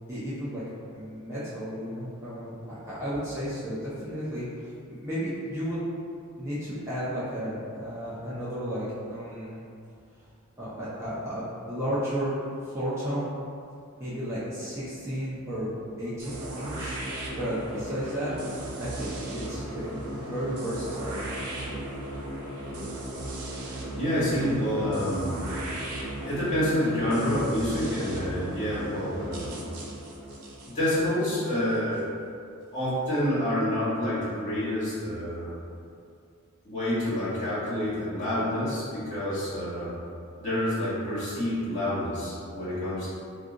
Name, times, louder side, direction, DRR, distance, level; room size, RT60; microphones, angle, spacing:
voice 1, 0.1-0.6 0.9-5.8 6.4-9.6 10.6-13.3 14.0-15.7 16.0-17.0 17.3-21.2, equal, 10° right, -12 dB, 0.5 m, -33 dB
sound 1, 16.2-32.0, right 1 dB, 85° right, 0.5 m, -36 dB
voice 2, 23.9-25.4 26.2-29.6 30.6-32.0 32.7-35.5 36.6-39.9 40.4-43.1, left 1 dB, 35° left, -12 dB, 1.3 m, -28 dB
2.4 x 2.3 x 3.7 m, 2.4 s
head